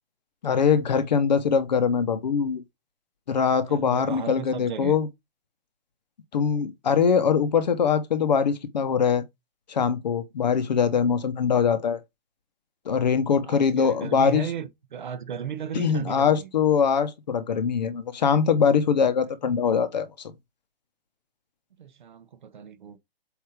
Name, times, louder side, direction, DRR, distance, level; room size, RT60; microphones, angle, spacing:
voice 1, 0.4-2.6 3.3-5.1 6.3-9.2 9.7-12.0 12.9-14.4 15.7-20.3, left 6 dB, 45° left, 1.0 m, -22 dB
voice 2, 3.7-5.0 13.4-16.5 21.8-23.0, right 8 dB, 50° right, 1.0 m, -35 dB
8.1 x 2.8 x 4.9 m
hypercardioid pair, 180°, 31 cm